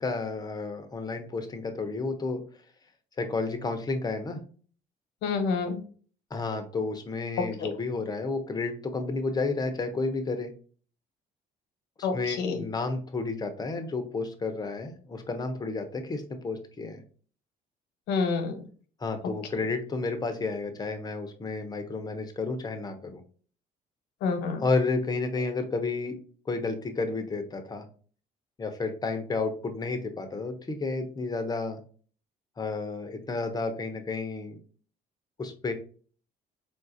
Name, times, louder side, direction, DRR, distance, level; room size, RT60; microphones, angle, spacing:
voice 1, 0.0-2.4 3.2-4.4 6.3-10.5 12.0-17.0 19.0-23.2 24.6-26.2 26.5-27.8 28.6-31.8 32.6-34.6 35.4-35.7, left 3 dB, 25° left, 6 dB, 0.7 m, -31 dB
voice 2, 5.2-5.8 12.0-12.6 18.1-18.6 24.2-24.6, left 4 dB, 85° left, 6 dB, 0.9 m, -28 dB
3.8 x 2.4 x 2.7 m, 0.41 s
cardioid pair, 110°, 17 cm